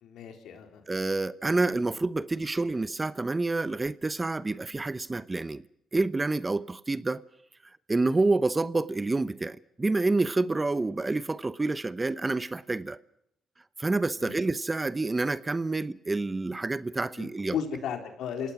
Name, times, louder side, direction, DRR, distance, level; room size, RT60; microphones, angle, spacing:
voice 1, 0.0-0.8 14.2-14.4 17.2-18.5, left 7 dB, 75° left, 4.0 m, -35 dB
voice 2, 0.9-5.6 5.9-7.2 7.9-13.0 13.8-17.6, right 3 dB, 25° right, 0.9 m, -28 dB
28.5 x 18.0 x 6.1 m
supercardioid pair, 65°, 0 cm